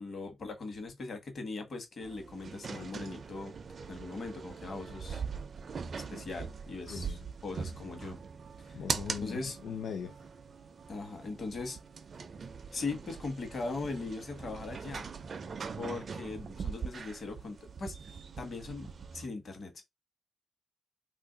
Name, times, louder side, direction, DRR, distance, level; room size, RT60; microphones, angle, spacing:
voice 1, 0.0-3.5 3.9-5.2 5.9-8.2 8.7-8.8 9.2-9.6 10.9-11.8 12.7-15.1 15.8-19.8, left 3 dB, 45° left, 1.1 m, -40 dB
sound 1, 2.0-19.3, right 5 dB, 45° right, 0.4 m, -42 dB
voice 2, 6.9-7.2 8.7-10.2, left 7 dB, 75° left, 0.4 m, -40 dB
2.7 x 2.5 x 3.8 m
wide cardioid pair, 145°, 0 cm